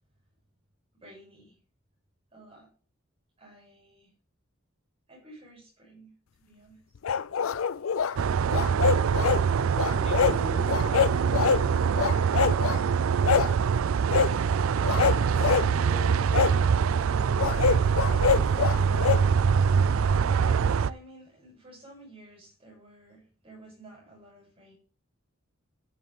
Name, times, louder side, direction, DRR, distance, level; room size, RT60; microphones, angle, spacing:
voice 1, 0.9-1.5 2.3-2.7 3.4-4.1 5.1-6.8 20.2-24.7, right 1 dB, 25° right, -3 dB, 7.2 m, -51 dB
sound 1, 7.0-8.1 8.5-9.4 9.8-10.4 10.7-11.6 12.0-12.8 13.2-13.5 14.1-14.3 14.8-15.7 16.3-16.5 17.4-19.2, left 6 dB, 75° left, 0.5 m, -25 dB
sound 2, 8.2-20.9, right 6 dB, 75° right, 0.4 m, -24 dB
voice 2, 10.0-12.2 14.8-16.8, left 1 dB, 35° left, -2 dB, 3.6 m, -43 dB
15.0 x 7.5 x 3.6 m, 0.39 s
head